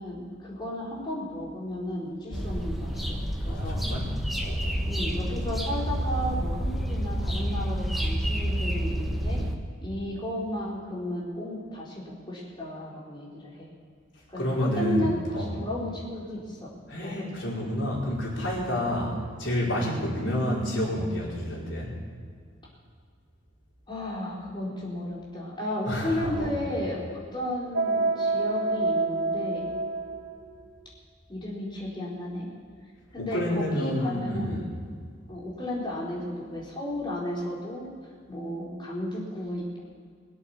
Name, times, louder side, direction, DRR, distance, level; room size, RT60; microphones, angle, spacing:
voice 1, 0.0-3.8 4.9-9.4 9.8-13.7 14.3-16.7 17.0-17.4 18.7-18.9 23.9-29.7 31.3-32.5 33.1-34.6 35.3-37.9 38.3-39.8, left 1 dB, 25° left, -6 dB, 4.3 m, -34 dB
sound 1, 2.3-9.6, equal, ahead, 1.3 m, -29 dB
voice 2, 3.4-4.8 14.4-15.5 16.9-21.9 25.9-26.6 33.2-34.7, equal, 70° left, -5 dB, 4.8 m, -29 dB
sound 2, 27.7-30.5, right 3 dB, 85° right, 1.1 m, -27 dB
22.0 x 8.3 x 7.1 m, 2.1 s
head